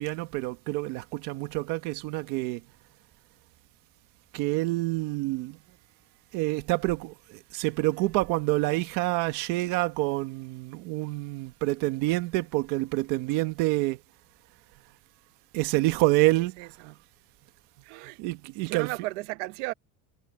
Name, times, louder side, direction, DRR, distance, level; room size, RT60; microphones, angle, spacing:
voice 1, 0.0-2.6 4.3-5.6 6.3-14.0 15.5-16.5 18.2-18.9, right 20 dB, 65° right, 1.5 m, -27 dB
voice 2, 16.3-17.0 17.8-18.2 18.6-19.7, right 22 dB, 90° right, 1.1 m, -36 dB
cardioid pair, 170°, 35 cm